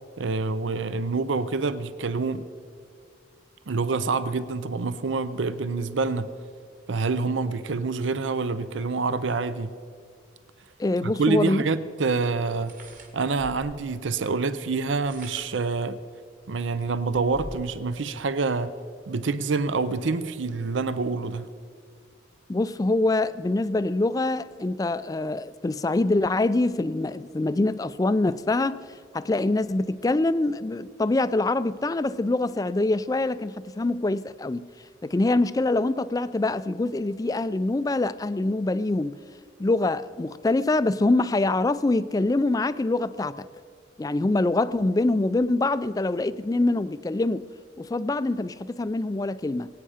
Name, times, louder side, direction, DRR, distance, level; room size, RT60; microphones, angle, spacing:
voice 1, 0.2-2.4 3.7-6.3 6.9-9.7 11.0-12.7 13.1-16.0 16.5-18.7 19.1-21.5, right 4 dB, 80° right, 0.6 m, -27 dB
voice 2, 10.8-11.6 22.5-34.7 35.0-39.2 39.6-43.5 44.0-47.4 47.8-49.7, left 2 dB, 20° left, 0.3 m, -25 dB
sound 1, 12.5-13.9 14.8-15.7 16.3-16.4 16.7-17.8, right 1 dB, 45° right, 2.3 m, -44 dB
22.5 x 8.8 x 5.0 m
head